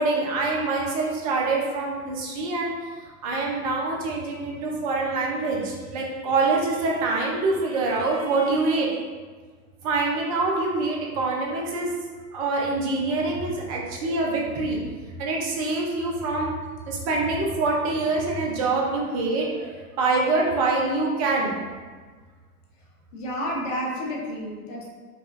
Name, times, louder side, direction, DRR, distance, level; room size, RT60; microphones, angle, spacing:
voice 1, 0.0-2.7 3.0-9.0 9.8-11.9 12.3-14.8 15.2-16.5 16.9-21.6, right 3 dB, 25° right, -1 dB, 0.4 m, -25 dB
voice 2, 23.1-24.9, equal, 55° left, -3 dB, 1.0 m, -30 dB
5.0 x 2.2 x 2.3 m, 1.5 s
figure-of-eight pair, 95°, 47 cm